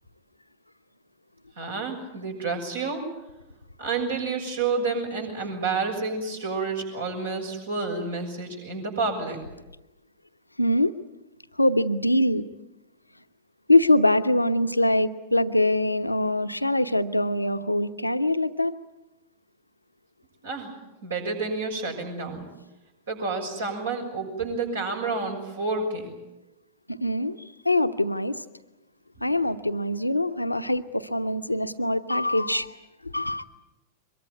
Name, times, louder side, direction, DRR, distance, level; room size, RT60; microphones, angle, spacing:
voice 1, 1.6-3.0 3.8-9.4 20.4-20.7 21.0-22.5 23.1-26.2, right 4 dB, 70° right, 2 dB, 6.6 m, -29 dB
voice 2, 10.6-10.9 11.6-12.4 13.7-18.7 26.9-27.4 27.6-28.4 29.2-32.8 33.0-33.4, left 1 dB, 85° left, 9 dB, 1.0 m, -23 dB
23.5 x 22.5 x 9.4 m, 0.98 s
figure-of-eight pair, 90°, 0 cm